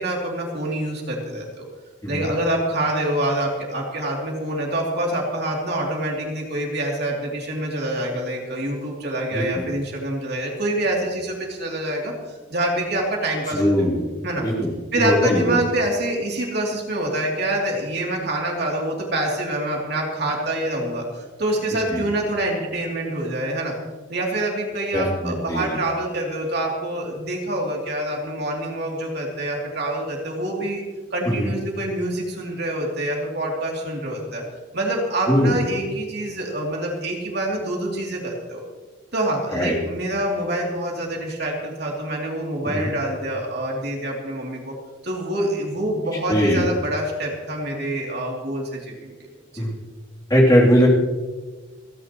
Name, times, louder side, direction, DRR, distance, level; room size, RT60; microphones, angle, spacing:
voice 1, 0.0-1.7 2.1-13.9 14.2-14.4 14.9-23.7 24.1-30.8 31.1-34.4 34.7-38.6 39.1-44.7 45.0-49.1 49.5-49.6, right 1 dB, 55° right, -1 dB, 3.0 m, -26 dB
voice 2, 9.3-9.6 13.5-14.1 14.4-15.5 21.9-22.0 24.9-25.8 31.2-31.5 35.3-35.6 39.5-39.7 42.6-42.9 46.3-46.6 49.6-49.7 50.3-50.9, equal, 20° left, -4 dB, 3.1 m, -20 dB
29.5 x 10.5 x 3.1 m, 1.3 s
head